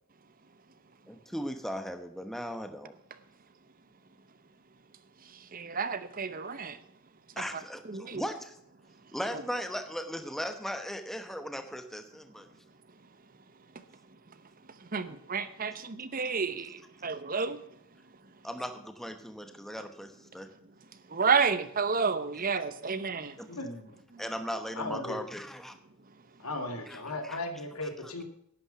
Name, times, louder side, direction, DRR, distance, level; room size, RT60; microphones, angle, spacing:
voice 1, 1.1-2.9 7.4-8.6 9.1-12.5 18.4-20.5 22.6-22.7 23.4-23.5 24.2-25.8 26.9-27.4 27.8-27.9, equal, ahead, 0.9 m, -38 dB
voice 2, 5.5-6.8 7.9-8.2 14.9-17.6 21.1-23.3, right 5 dB, 40° right, 0.8 m, -30 dB
voice 3, 23.4-24.0 24.8-25.2 26.4-28.2, left 2 dB, 85° left, 2.8 m, -36 dB
11.5 x 9.0 x 5.8 m
head